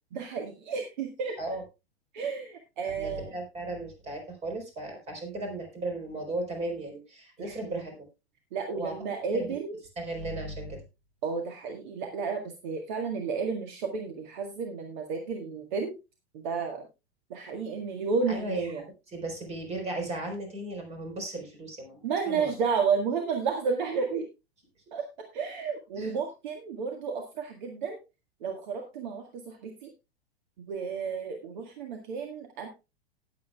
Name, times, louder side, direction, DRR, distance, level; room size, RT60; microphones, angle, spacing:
voice 1, 0.1-1.4 2.1-3.3 7.4-7.8 8.5-9.8 11.2-15.9 16.3-16.9 17.3-18.8 22.0-24.3 24.9-25.0 25.3-28.0 28.4-29.9 30.6-32.7, right 5 dB, 50° right, 3 dB, 1.8 m, -32 dB
voice 2, 2.8-8.1 8.7-8.9 9.3-9.5 10.0-10.8 18.3-18.7 19.1-22.5 25.9-26.1, right 2 dB, 20° right, 3 dB, 4.2 m, -36 dB
18.5 x 7.9 x 2.3 m, 0.26 s
figure-of-eight pair, 100°, 31 cm